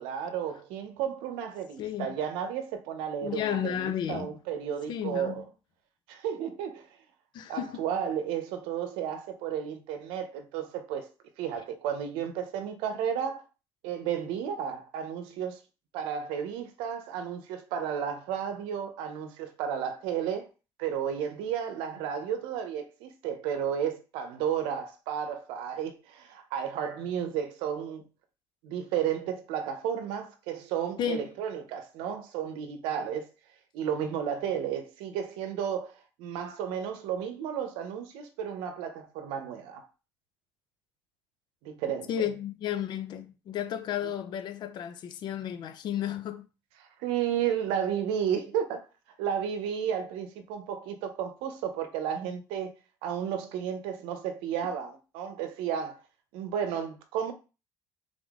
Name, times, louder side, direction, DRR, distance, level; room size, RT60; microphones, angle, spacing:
voice 1, 0.0-5.4 6.1-6.9 7.5-11.1 11.4-13.4 13.8-15.6 15.9-20.5 20.8-28.1 28.6-33.3 33.7-35.9 36.2-39.8 41.6-42.3 47.0-48.8 49.2-52.7 53.0-56.0 56.3-57.3, right 8 dB, 85° right, 0.8 m, -33 dB
voice 2, 1.8-2.1 3.2-4.3 4.9-5.4 7.3-7.8 31.0-31.3 42.1-46.4, left 10 dB, 60° left, 0.7 m, -33 dB
3.8 x 3.6 x 3.7 m
cardioid pair, 100°, 9 cm